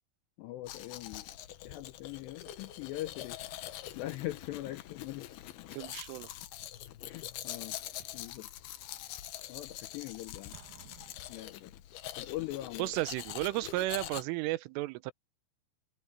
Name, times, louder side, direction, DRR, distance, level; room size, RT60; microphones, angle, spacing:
voice 1, 0.4-1.3 1.6-3.4 4.0-5.3 7.0-7.7 8.1-8.5 9.5-10.6 11.3-11.7 12.2-12.9, left 16 dB, 90° left, 2.5 m, -41 dB
Domestic sounds home sounds, 0.7-14.2, left 13 dB, 70° left, 2.5 m, -44 dB
voice 2, 5.7-6.3 12.8-15.1, right 19 dB, 85° right, 3.3 m, -33 dB
Explosion, 10.5-12.1, right 8 dB, 55° right, 3.0 m, -57 dB
omnidirectional pair, 5.7 m